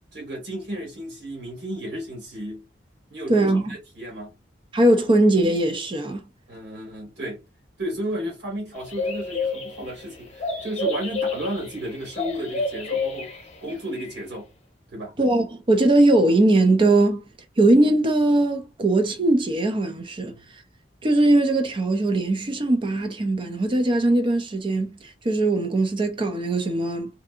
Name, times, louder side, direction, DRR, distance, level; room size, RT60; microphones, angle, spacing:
voice 1, 0.1-2.6 3.1-4.4 6.5-7.4 7.8-13.3 13.6-14.5 14.9-15.2 20.3-20.4, equal, 65° right, 1.6 m, -33 dB
voice 2, 3.3-3.7 4.7-6.2 15.2-17.2 17.6-20.3 21.0-27.1, right 2 dB, 30° right, 0.4 m, -20 dB
sound 1, 8.7-13.7 14.0-14.2, left 3 dB, 35° left, 0.8 m, -29 dB
2.6 x 2.6 x 2.4 m
head